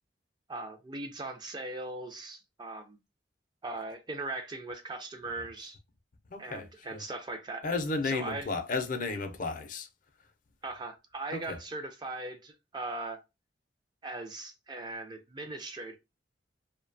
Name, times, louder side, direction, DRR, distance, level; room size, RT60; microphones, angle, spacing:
voice 1, 0.5-3.0 3.6-5.8 6.4-7.6 8.0-8.5 10.6-13.2 14.0-16.0, right 2 dB, 25° right, 0.4 m, -39 dB
voice 2, 6.3-7.0 7.6-9.9 11.3-11.6, left 3 dB, 45° left, 0.5 m, -33 dB
2.6 x 2.1 x 2.5 m
head